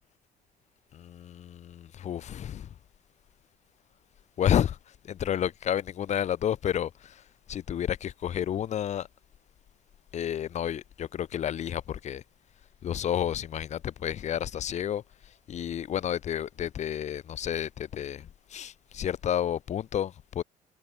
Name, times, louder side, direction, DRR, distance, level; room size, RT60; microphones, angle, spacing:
voice 1, 0.9-2.7 4.4-4.8 5.0-7.2 7.5-9.1 10.1-12.2 12.8-15.0 15.5-20.4, left 10 dB, 45° left, 0.6 m, -30 dB
cardioid pair, 110°, 17 cm